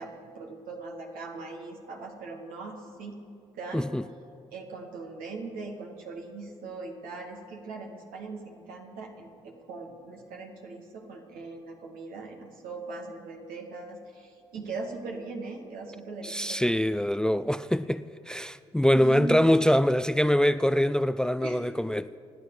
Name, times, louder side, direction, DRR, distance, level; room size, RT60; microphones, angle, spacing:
voice 1, 0.0-3.2 3.6-3.9 4.5-16.7 18.9-19.4 21.4-21.6, right 3 dB, 75° right, 2.3 m, -40 dB
voice 2, 3.7-4.0 16.2-22.1, equal, 5° left, 0.4 m, -24 dB
28.0 x 9.5 x 5.0 m
hypercardioid pair, 45°, 15 cm